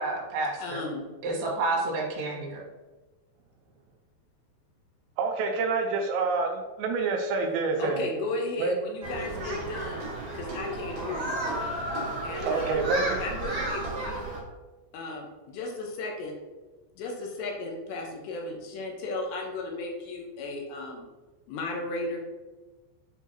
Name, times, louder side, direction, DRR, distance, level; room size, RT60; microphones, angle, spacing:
voice 1, 0.0-0.8 1.2-2.6, right 2 dB, 65° right, -3 dB, 2.9 m, -30 dB
voice 2, 0.6-1.1 7.8-10.0 10.3-11.4 12.2-12.8 13.2-14.3 14.9-16.3 17.0-21.0 21.5-22.2, left 2 dB, 75° left, 1 dB, 2.9 m, -35 dB
voice 3, 5.2-8.0 8.6-8.8 12.4-13.2, right 4 dB, 85° right, 2 dB, 2.6 m, -27 dB
Human group actions, 9.0-14.4, right 1 dB, 45° right, 2.6 m, -32 dB
8.0 x 4.5 x 2.8 m, 1.2 s
omnidirectional pair, 5.5 m